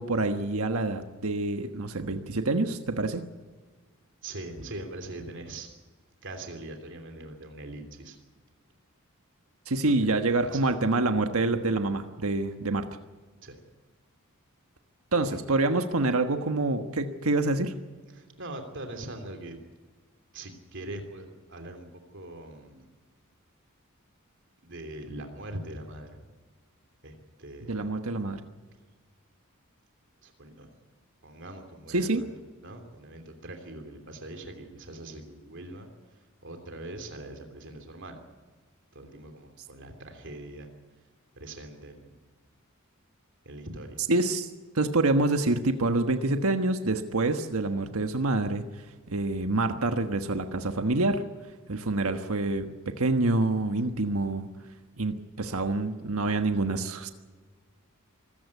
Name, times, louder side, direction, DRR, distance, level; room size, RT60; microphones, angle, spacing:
voice 1, 0.0-3.2 9.7-12.9 15.1-17.7 27.7-28.4 31.9-32.2 44.1-44.5 44.7-48.6 49.1-51.2 51.7-54.5 55.0-57.1, right 2 dB, 80° right, 7 dB, 1.4 m, -26 dB
voice 2, 4.2-5.7 6.2-8.2 9.8-10.7 13.4-13.6 15.2-15.4 18.1-19.6 20.3-22.8 24.6-26.2 27.0-27.9 30.2-30.8 31.2-32.3 32.6-38.2 38.9-40.7 41.4-42.1 43.4-44.0, right 1 dB, 60° right, 5 dB, 3.0 m, -42 dB
25.0 x 15.0 x 8.4 m, 1.4 s
head